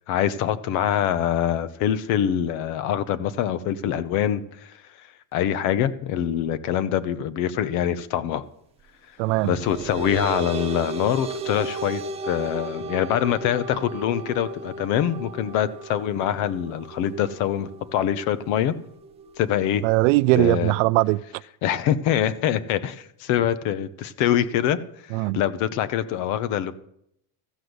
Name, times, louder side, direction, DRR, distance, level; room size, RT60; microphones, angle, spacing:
voice 1, 0.1-4.7 5.3-8.4 9.4-18.7 19.4-19.8 20.4-20.7 21.6-24.8 25.2-26.7, left 10 dB, 45° left, 0.7 m, -24 dB
voice 2, 9.2-9.5 19.8-21.2 25.1-25.4, right 21 dB, 65° right, 0.5 m, -20 dB
sound 1, 9.4-20.3, right 3 dB, 15° right, 0.5 m, -35 dB
14.0 x 6.7 x 7.9 m
cardioid pair, 175°, 42 cm